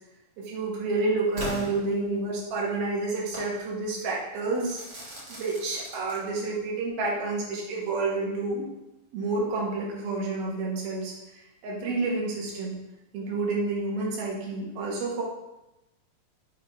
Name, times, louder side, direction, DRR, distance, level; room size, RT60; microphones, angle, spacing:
voice 1, 0.4-4.8 5.3-8.7 9.1-11.1 11.6-12.8 13.1-15.2, right 3 dB, 85° right, -3 dB, 3.3 m, -29 dB
Crackle / Fireworks, 1.4-2.5 3.3-3.6 4.6-6.6, equal, 45° right, 1.6 m, -39 dB
7.4 x 3.5 x 4.7 m, 0.96 s
omnidirectional pair, 4.2 m